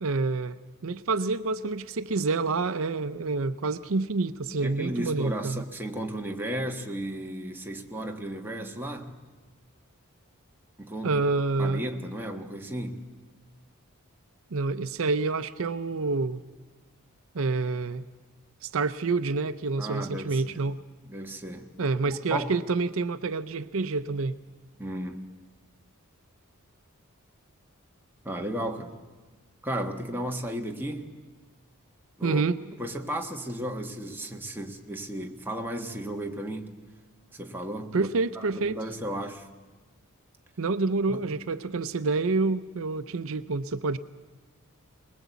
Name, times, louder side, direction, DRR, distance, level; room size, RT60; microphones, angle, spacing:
voice 1, 0.0-5.7 11.0-11.8 14.5-16.4 17.3-18.0 18.6-20.8 21.8-24.4 32.2-32.6 37.9-38.8 40.6-44.0, right 3 dB, 65° right, 12 dB, 0.6 m, -28 dB
voice 2, 4.6-9.1 10.8-11.2 11.6-13.0 19.8-20.6 21.1-21.7 22.3-22.5 24.8-25.2 28.2-28.9 29.6-31.1 32.2-32.5 32.8-36.7 37.3-38.1 38.3-39.5 41.1-41.2, right 1 dB, 10° right, 2 dB, 1.5 m, -34 dB
22.5 x 20.5 x 8.2 m, 1.4 s
head